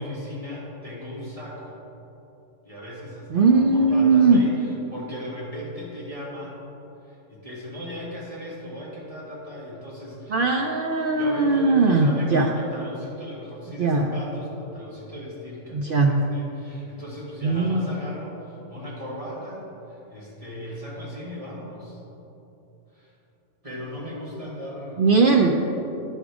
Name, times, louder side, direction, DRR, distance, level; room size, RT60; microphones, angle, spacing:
voice 1, 0.0-1.8 2.6-6.6 7.0-10.5 11.2-22.0 22.9-23.1 23.6-25.2, equal, 25° right, -7 dB, 1.8 m, -37 dB
voice 2, 3.3-4.4 10.3-12.5 13.8-14.1 15.7-16.1 17.4-17.9 25.0-25.6, right 3 dB, 80° right, 1 dB, 0.4 m, -19 dB
10.0 x 5.0 x 4.8 m, 2.9 s
omnidirectional pair, 1.5 m